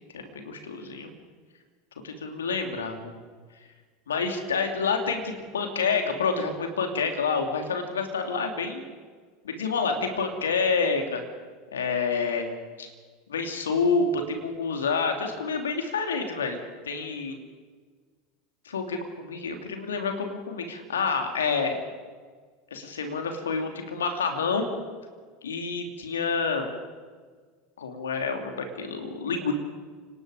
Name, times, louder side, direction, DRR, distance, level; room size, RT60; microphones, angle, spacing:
voice 1, 0.1-1.1 2.0-3.1 4.1-8.8 9.4-11.2 11.7-12.5 12.8-12.9 13.3-16.6 16.8-17.4 18.6-21.8 22.7-24.7 25.4-26.7 27.8-29.5, left 5 dB, 80° left, 5 dB, 3.0 m, -28 dB
29.0 x 19.0 x 5.1 m, 1.5 s
figure-of-eight pair, 80°, 0 cm